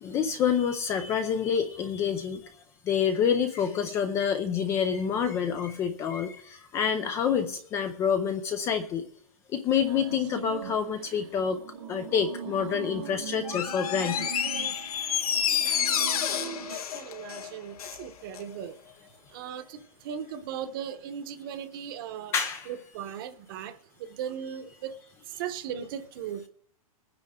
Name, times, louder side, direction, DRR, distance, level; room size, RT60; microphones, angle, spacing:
voice 1, 0.0-2.5 2.9-9.1 9.5-11.6 11.9-14.3 15.6-15.9 22.3-22.7, left 7 dB, 15° left, 0.5 m, -27 dB
sound 1, 9.9-16.8, right 7 dB, 55° right, 1.4 m, -40 dB
Door, 13.4-18.0 18.3-18.4, left 8 dB, 80° left, 2.0 m, -29 dB
voice 2, 16.7-18.8 19.3-22.3 22.7-23.7 24.0-24.9 25.4-26.5, right 9 dB, 35° right, 1.1 m, -37 dB
20.5 x 9.7 x 3.7 m
hypercardioid pair, 170°, 19 cm